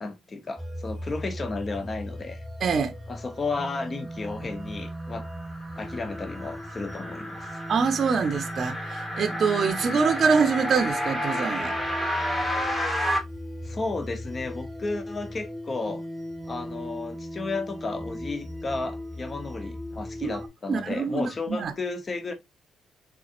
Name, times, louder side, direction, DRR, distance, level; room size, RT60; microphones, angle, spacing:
voice 1, 0.0-2.4 3.1-5.3 5.8-7.6 13.6-16.0 16.4-22.3, left 3 dB, 35° left, 0.7 m, -33 dB
sound 1, 0.6-20.5, equal, 10° right, 1.1 m, -38 dB
voice 2, 2.6-2.9 7.7-11.7 20.2-20.4 20.7-21.7, right 5 dB, 50° right, 0.6 m, -25 dB
sound 2, 4.8-13.2, equal, 20° left, 1.7 m, -31 dB
4.0 x 3.7 x 2.4 m
cardioid pair, 90°, 0 cm